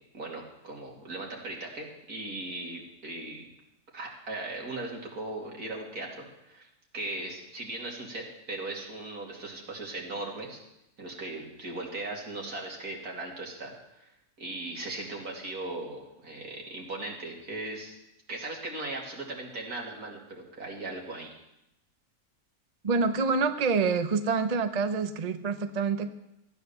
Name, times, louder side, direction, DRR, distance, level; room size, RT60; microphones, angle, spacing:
voice 1, 0.1-3.5 3.9-6.7 6.9-10.6 11.0-13.8 14.0-14.1 14.4-18.0 18.3-21.3, right 2 dB, 90° right, -1 dB, 3.0 m, -38 dB
voice 2, 22.8-26.1, right 4 dB, 35° right, 10 dB, 0.7 m, -27 dB
15.0 x 9.2 x 6.9 m, 0.85 s
omnidirectional pair, 1.5 m